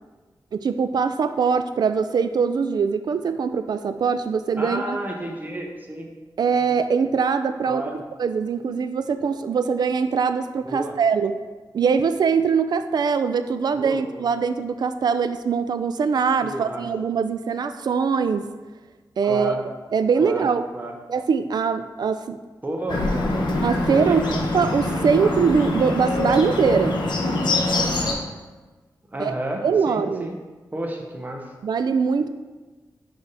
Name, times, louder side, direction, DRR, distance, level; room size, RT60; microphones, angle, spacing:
voice 1, 0.5-5.0 6.4-7.8 8.2-11.4 11.7-18.5 19.2-19.5 19.9-20.7 21.1-22.4 23.6-24.3 24.5-27.0 29.2-29.3 29.6-30.3 31.6-32.3, right 6 dB, 65° right, 10 dB, 0.4 m, -22 dB
voice 2, 4.6-6.1 6.5-6.6 7.6-8.0 10.6-11.0 13.7-14.3 16.4-16.9 19.2-19.6 20.2-20.4 20.7-20.9 22.6-23.3 23.9-24.3 24.9-25.3 29.1-30.3 30.7-31.5, right 1 dB, 20° right, 1 dB, 0.8 m, -31 dB
Bird, 22.9-28.1, left 2 dB, 75° left, 1.1 m, -24 dB
10.5 x 3.5 x 4.0 m, 1.3 s
wide cardioid pair, 110°, 8 cm